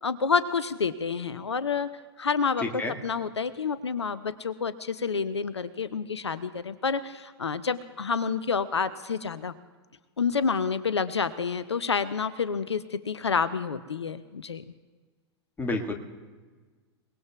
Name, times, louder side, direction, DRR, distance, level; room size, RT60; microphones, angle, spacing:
voice 1, 0.0-1.9 2.2-2.6 3.0-9.5 10.2-14.6, left 5 dB, 75° left, 15 dB, 0.6 m, -28 dB
voice 2, 2.6-2.9 15.6-15.9, left 2 dB, 15° left, 2 dB, 1.8 m, -29 dB
28.5 x 19.0 x 2.4 m, 1.4 s
figure-of-eight pair, 95°, 14 cm